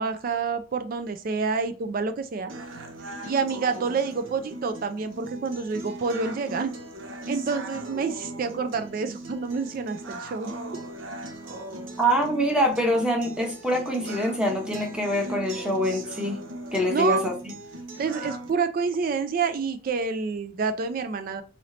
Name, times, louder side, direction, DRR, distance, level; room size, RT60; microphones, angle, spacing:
voice 1, 0.0-2.5 3.2-6.7 7.3-10.5 16.9-17.3 18.0-21.4, right 5 dB, 45° right, 10 dB, 0.3 m, -28 dB
sound 1, 2.5-18.5, right 1 dB, 80° right, 0.7 m, -39 dB
voice 2, 12.0-16.4 16.7-17.3, equal, 5° right, 1 dB, 0.8 m, -25 dB
3.1 x 2.8 x 3.8 m, 0.35 s
head